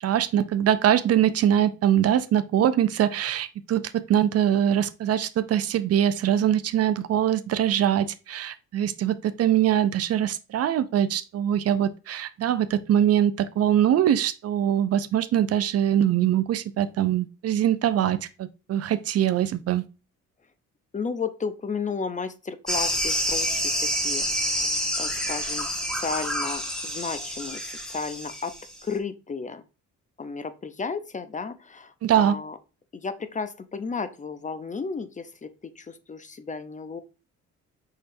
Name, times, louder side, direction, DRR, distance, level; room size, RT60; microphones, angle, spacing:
voice 1, 0.0-19.8 32.0-32.4, right 10 dB, 55° right, 0.4 m, -23 dB
voice 2, 20.9-28.5 28.8-29.6 30.2-32.6 32.9-35.5 35.8-37.0, left 5 dB, 25° left, 0.5 m, -33 dB
sound 1, 22.7-28.8, equal, ahead, 1.3 m, -28 dB
5.7 x 3.3 x 2.6 m
cardioid pair, 90°, 30 cm